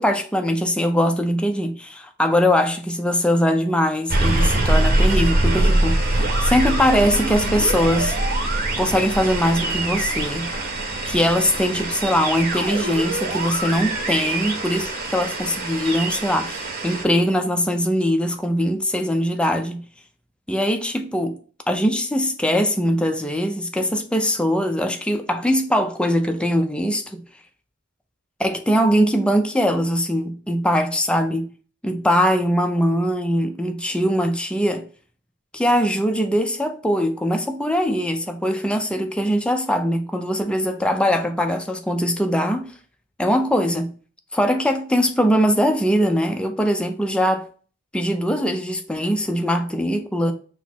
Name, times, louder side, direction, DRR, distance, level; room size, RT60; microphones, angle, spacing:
voice 1, 0.0-8.2 8.8-10.5 11.1-19.8 20.5-21.4 21.7-27.2 28.4-31.5 31.8-34.9 35.5-42.7 43.2-43.9 44.3-47.5 47.9-50.3, equal, 5° left, 0.4 m, -21 dB
sound 1, 4.1-17.0, right 2 dB, 45° right, 1.0 m, -23 dB
6.1 x 2.0 x 4.3 m
head